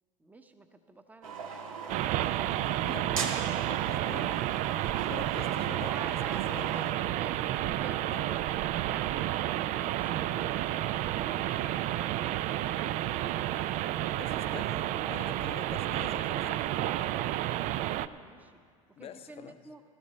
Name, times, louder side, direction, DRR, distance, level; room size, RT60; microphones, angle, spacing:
voice 1, 0.2-2.7 5.8-9.4 18.0-18.5 19.0-19.8, right 3 dB, 10° right, 0.9 m, -51 dB
sound 1, 1.2-6.9, right 5 dB, 80° right, 1.6 m, -40 dB
sound 2, 1.9-18.1, right 13 dB, 45° right, 0.4 m, -31 dB
voice 2, 2.8-4.5 4.8-6.7 8.1-8.3 14.2-17.0 19.0-19.6, left 9 dB, 35° left, 0.7 m, -46 dB
19.5 x 13.0 x 3.2 m
hypercardioid pair, 85°, 17 cm